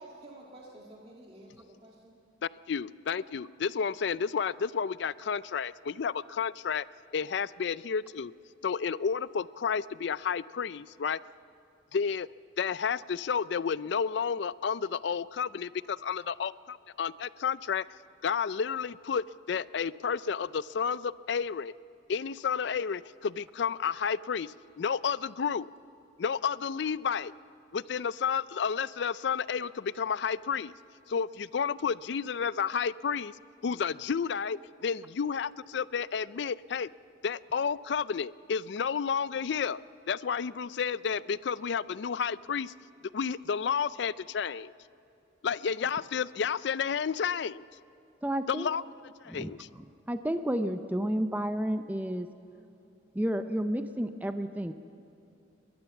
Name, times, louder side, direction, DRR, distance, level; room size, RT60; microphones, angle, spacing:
voice 1, 0.0-2.2, right 1 dB, 30° right, -3 dB, 1.8 m, -50 dB
voice 2, 2.4-6.9 7.1-8.3 8.6-11.2 11.9-12.3 12.6-16.5 17.0-17.8 18.2-21.7 22.1-25.7 26.2-27.3 27.7-30.7 31.1-33.3 33.6-36.9 37.2-39.8 40.1-42.7 43.1-44.7 45.4-47.6 48.5-48.8 49.2-49.7, left 6 dB, 65° left, 18 dB, 0.4 m, -31 dB
voice 3, 48.2-48.7 49.3-52.3 53.1-54.7, equal, 10° right, 8 dB, 0.5 m, -31 dB
29.5 x 12.5 x 7.1 m, 2.7 s
head